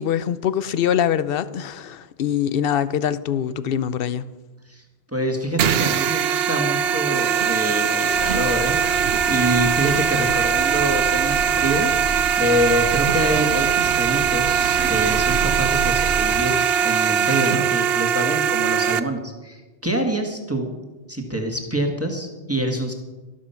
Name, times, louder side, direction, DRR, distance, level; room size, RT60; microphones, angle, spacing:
voice 1, 0.0-4.3, left 9 dB, 60° left, 0.8 m, -23 dB
voice 2, 5.1-8.8 9.3-11.9 12.4-20.7 21.1-22.9, equal, 10° right, 1.7 m, -25 dB
sound 1, 5.6-19.0, right 7 dB, 60° right, 0.8 m, -21 dB
sound 2, 8.1-16.4, right 5 dB, 90° right, 1.1 m, -31 dB
12.5 x 12.5 x 5.8 m
omnidirectional pair, 1.2 m